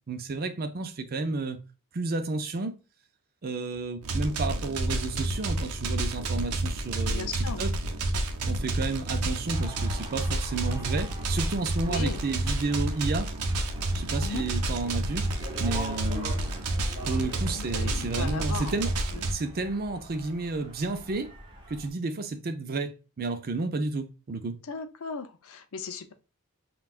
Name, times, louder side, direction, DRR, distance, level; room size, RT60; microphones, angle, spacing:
voice 1, 0.1-1.6 1.9-2.8 3.4-7.7 8.5-13.3 13.9-15.3 15.6-16.3 17.1-18.9 19.3-21.3 21.7-24.6, right 3 dB, 45° right, 0.5 m, -31 dB
sound 1, 4.0-19.3, right 2 dB, 85° right, 0.7 m, -30 dB
voice 2, 7.1-7.7 11.8-12.2 14.2-14.4 17.5-18.8 19.1-19.3 24.6-26.1, left 4 dB, 65° left, 0.6 m, -37 dB
sound 2, 9.5-21.9, equal, 20° right, 1.0 m, -43 dB
5.5 x 2.3 x 2.4 m
head